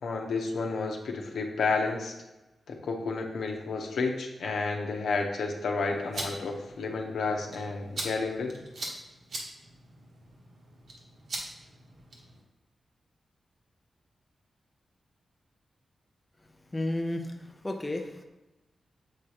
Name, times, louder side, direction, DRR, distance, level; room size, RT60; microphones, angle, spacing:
voice 1, 0.0-2.1 2.7-8.6, left 4 dB, 90° left, 2 dB, 0.9 m, -31 dB
sound 1, 5.9-12.4, right 1 dB, 65° right, 1.2 m, -42 dB
voice 2, 16.7-18.2, left 1 dB, 10° left, 3 dB, 0.5 m, -32 dB
7.4 x 4.8 x 2.9 m, 1.0 s
wide cardioid pair, 165°, 0 cm